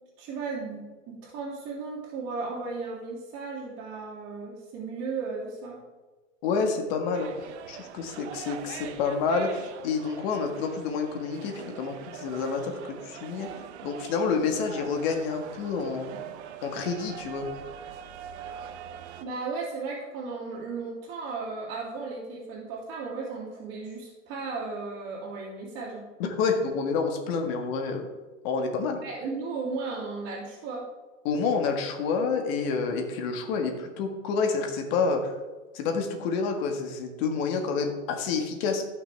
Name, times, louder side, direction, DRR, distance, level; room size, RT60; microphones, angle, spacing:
voice 1, 0.2-5.8 19.2-26.0 29.0-30.8, right 4 dB, 35° right, -8 dB, 2.9 m, -35 dB
voice 2, 6.4-7.3 7.7-13.5 13.8-16.1 16.6-17.5 26.2-28.1 28.4-29.0 31.2-35.3 35.7-38.8, left 5 dB, 50° left, 4 dB, 1.8 m, -28 dB
sound 1, 7.1-19.2, right 9 dB, 60° right, 1.0 m, -43 dB
15.0 x 6.1 x 3.5 m, 1.2 s
hypercardioid pair, 115°, 38 cm